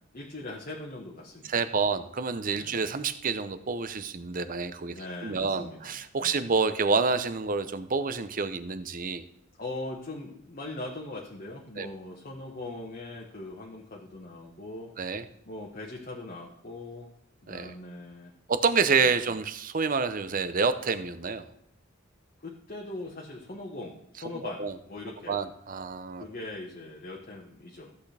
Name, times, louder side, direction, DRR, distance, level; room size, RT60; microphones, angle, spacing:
voice 1, 0.0-1.8 2.5-2.8 4.9-6.5 9.6-14.9 15.5-17.1 17.4-18.3 19.0-19.2 22.4-25.4 26.2-27.9, left 2 dB, 40° left, -1 dB, 1.3 m, -41 dB
voice 2, 1.4-9.2 11.8-11.9 15.0-15.2 17.5-17.7 18.5-21.5 24.6-24.7 25.3-26.3, right 4 dB, 40° right, 11 dB, 0.7 m, -28 dB
14.5 x 8.3 x 3.4 m, 0.74 s
head